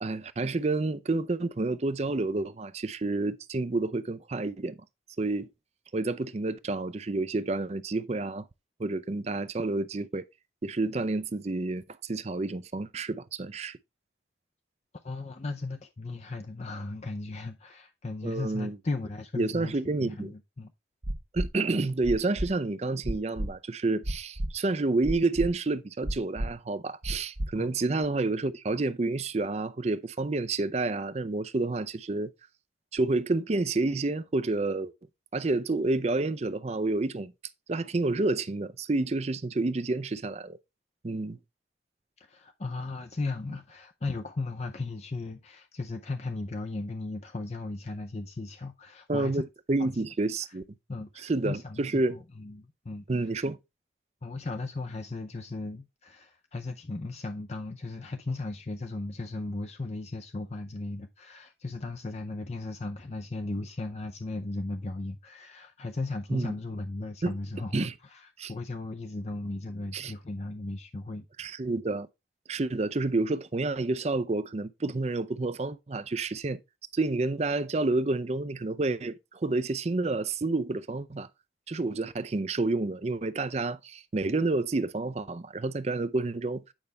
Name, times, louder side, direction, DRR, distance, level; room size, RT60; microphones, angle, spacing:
voice 1, 0.0-4.8 5.2-5.5 5.9-8.5 8.8-10.2 10.6-13.8 18.2-18.8 19.4-20.3 21.3-32.3 32.9-34.9 35.3-37.3 37.7-40.6 41.0-41.4 49.1-50.6 51.2-52.2 53.1-53.6 66.3-66.5 67.2-67.3 67.7-67.9 68.4-68.5 69.9-70.1 71.4-72.1 72.5-76.6 76.9-81.3 81.7-86.6, right 2 dB, 35° right, 0.5 m, -29 dB
voice 2, 15.0-20.7 27.6-27.7 42.2-49.4 49.8-50.0 50.9-53.3 54.2-71.3, left 2 dB, 35° left, 0.5 m, -36 dB
sound 1, 21.0-21.5 22.0-22.5 23.0-23.5 24.0-24.5 25.0-25.5 26.0-26.5 27.0-27.5 28.0-28.1, right 1 dB, 60° right, 1.2 m, -31 dB
8.8 x 5.4 x 3.4 m
head